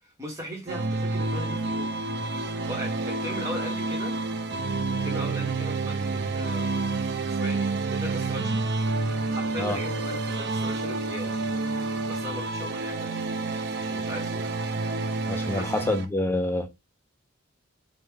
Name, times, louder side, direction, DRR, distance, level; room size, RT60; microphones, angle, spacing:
voice 1, 0.0-2.0 2.6-4.2 4.9-6.8 7.3-8.6 9.2-11.4 12.1-13.5 13.7-14.5 15.3-15.9, left 1 dB, 15° right, 0.9 m, -38 dB
sound 1, 0.7-16.0, right 3 dB, 55° right, 0.4 m, -29 dB
voice 2, 15.3-16.7, left 1 dB, 10° left, 0.4 m, -27 dB
3.4 x 2.1 x 3.2 m
head